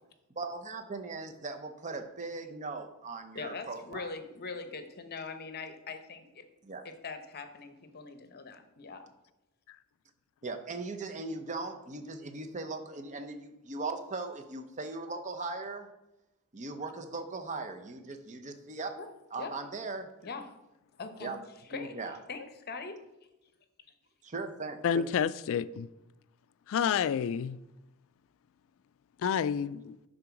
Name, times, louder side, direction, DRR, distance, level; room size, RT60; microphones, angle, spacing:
voice 1, 0.4-4.1 6.6-6.9 10.4-15.9 16.5-19.0 19.3-20.1 21.2-21.4 21.7-22.2 24.2-25.0, right 3 dB, 35° right, 0.7 m, -39 dB
voice 2, 3.3-6.4 6.8-9.1 19.0-19.1 19.4-19.5 20.2-20.5 21.0-21.4 21.7-22.0 22.3-23.0, left 4 dB, 45° left, 0.8 m, -42 dB
voice 3, 24.8-25.9 26.7-27.6 29.2-30.0, left 7 dB, 60° left, 0.3 m, -29 dB
9.8 x 3.9 x 5.8 m
head